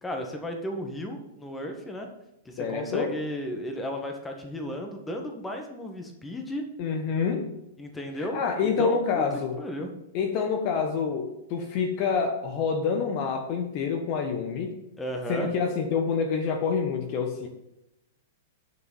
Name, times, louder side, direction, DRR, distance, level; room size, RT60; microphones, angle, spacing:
voice 1, 0.0-2.1 2.4-6.6 7.8-9.2 9.6-9.9 15.0-15.5, equal, 10° left, 3 dB, 1.7 m, -34 dB
voice 2, 2.6-3.1 6.8-7.5 8.2-9.6 10.1-14.7 15.3-17.5, left 5 dB, 40° left, 4 dB, 1.3 m, -27 dB
9.9 x 6.4 x 5.5 m, 0.89 s
figure-of-eight pair, 100°, 0 cm